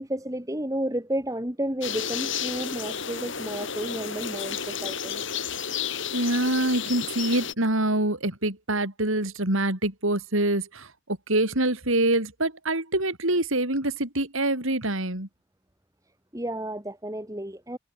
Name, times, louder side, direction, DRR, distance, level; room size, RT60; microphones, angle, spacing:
voice 1, 0.0-5.2 16.3-17.8, right 1 dB, 15° right, 2.4 m, -32 dB
sound 1, 1.8-7.5, left 7 dB, 60° left, 7.2 m, -32 dB
voice 2, 6.1-15.3, right 1 dB, 70° right, 4.5 m, -25 dB
head